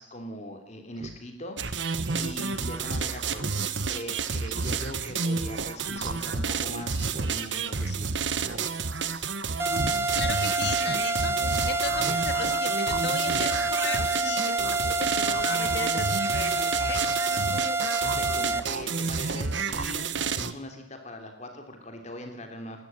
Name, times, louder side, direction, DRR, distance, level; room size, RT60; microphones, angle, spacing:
voice 1, 0.0-8.1 18.0-22.8, left 1 dB, 40° left, 5 dB, 3.3 m, -41 dB
Speech synthesizer, 1.0-1.2 1.6-1.7 2.0-2.3 2.7-2.8 3.4-3.6 4.0-4.1 4.5-4.8 5.8-6.1 7.0-7.4 7.7-7.8 8.4-8.7 9.0-9.2 9.7-9.9 10.4-10.5 10.8-11.0 12.0-12.3 12.6-12.7 13.2-13.5 13.8-13.9, right 1 dB, 45° right, 1.6 m, -39 dB
sound 1, 1.6-20.5, right 5 dB, 70° right, 1.3 m, -30 dB
sound 2, 9.6-18.6, right 2 dB, 15° right, 0.9 m, -27 dB
voice 2, 10.2-14.7 15.0-17.2, left 5 dB, 65° left, 9 dB, 2.1 m, -36 dB
20.5 x 14.0 x 9.0 m, 0.69 s
head